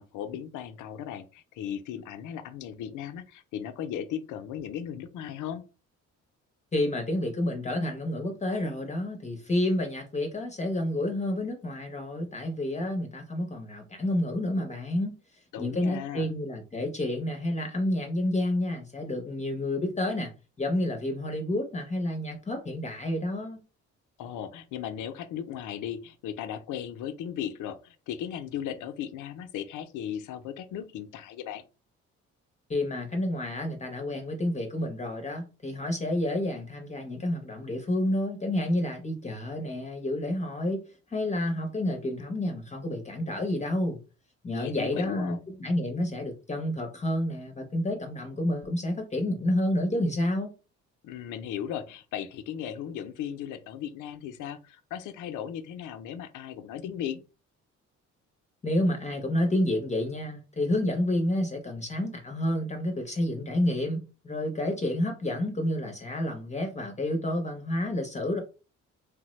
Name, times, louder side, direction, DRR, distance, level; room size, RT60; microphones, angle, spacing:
voice 1, 0.0-5.6 15.5-16.3 24.2-31.6 44.5-45.4 51.0-57.2, left 9 dB, 80° left, 0.5 m, -36 dB
voice 2, 6.7-15.1 15.6-20.3 20.6-23.6 32.7-40.8 41.1-44.0 44.4-50.5 58.6-68.4, left 1 dB, 25° left, 0.7 m, -29 dB
3.2 x 2.0 x 3.1 m
cardioid pair, 90°, 30 cm